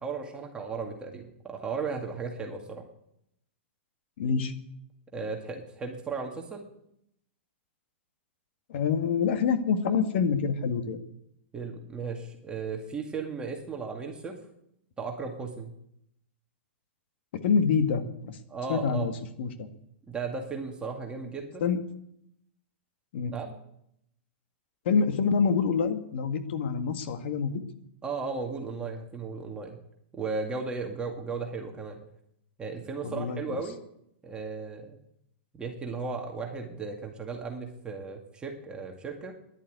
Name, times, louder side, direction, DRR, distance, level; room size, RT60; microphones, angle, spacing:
voice 1, 0.0-2.8 5.1-6.7 11.5-14.4 15.0-15.7 18.5-19.1 20.1-21.6 23.3-23.6 28.0-29.8 30.1-32.0 32.6-33.8 34.2-35.0 35.5-39.3, right 4 dB, 15° right, 1 dB, 2.1 m, -35 dB
voice 2, 4.2-4.5 8.7-11.0 17.4-18.4 18.7-19.7 21.6-21.8 23.1-23.3 24.9-27.6 33.0-33.6, left 6 dB, 65° left, 8 dB, 1.9 m, -26 dB
13.0 x 11.0 x 9.4 m, 0.76 s
hypercardioid pair, 135°, 6 cm